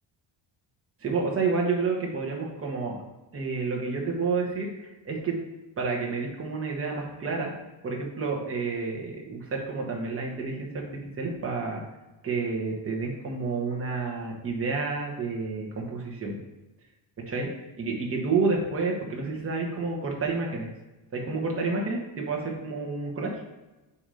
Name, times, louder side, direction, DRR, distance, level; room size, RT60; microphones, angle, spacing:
voice 1, 1.0-3.0 3.3-5.3 5.8-7.5 7.8-11.8 12.2-16.4 17.3-17.5 17.8-20.7 21.1-23.3, right 4 dB, 30° right, -2 dB, 1.1 m, -29 dB
7.0 x 2.7 x 4.8 m, 1.1 s
cardioid pair, 170°, 47 cm